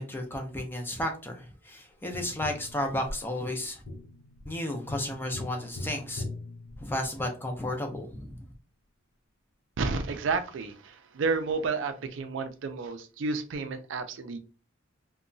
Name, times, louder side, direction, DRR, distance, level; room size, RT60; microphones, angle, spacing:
voice 1, 0.0-3.8 4.5-6.2 6.8-8.5, left 1 dB, 10° left, 2 dB, 0.4 m, -33 dB
Tap, 2.1-7.4 10.0-10.1, left 2 dB, 75° left, 0.5 m, -42 dB
voice 2, 9.8-14.4, right 4 dB, 65° right, 8 dB, 0.4 m, -31 dB
2.8 x 2.2 x 2.5 m, 0.36 s
head